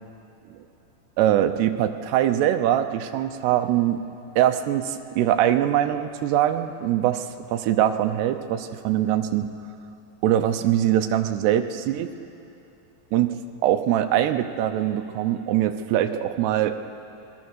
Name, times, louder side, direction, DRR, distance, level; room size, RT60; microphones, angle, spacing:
voice 1, 1.2-4.0 4.4-7.3 7.5-9.5 10.2-12.1 13.1-16.7, right 11 dB, 75° right, 8 dB, 2.8 m, -22 dB
30.0 x 21.0 x 6.4 m, 2.8 s
omnidirectional pair, 5.1 m